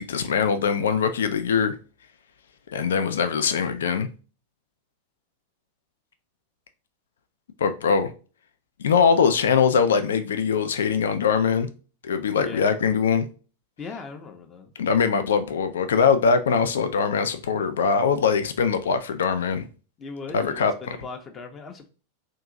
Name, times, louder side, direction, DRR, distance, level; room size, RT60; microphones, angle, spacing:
voice 1, 0.0-1.7 2.7-4.1 7.6-8.1 8.8-11.7 12.0-13.3 14.8-19.7 20.3-21.0, left 6 dB, 65° left, 0.3 m, -22 dB
voice 2, 12.4-12.8 13.8-14.7 20.0-21.9, left 4 dB, 25° left, 0.6 m, -38 dB
2.7 x 2.5 x 3.6 m
figure-of-eight pair, 90°, 0 cm